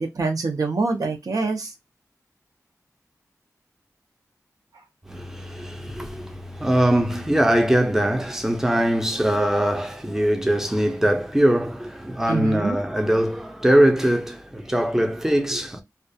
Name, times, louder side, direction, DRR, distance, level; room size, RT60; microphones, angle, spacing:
voice 1, 0.0-1.7 12.3-12.8, right 3 dB, 75° right, 0.6 m, -25 dB
voice 2, 5.1-15.8, right 1 dB, 5° right, 0.5 m, -22 dB
2.3 x 2.3 x 2.6 m
wide cardioid pair, 85°, 6 cm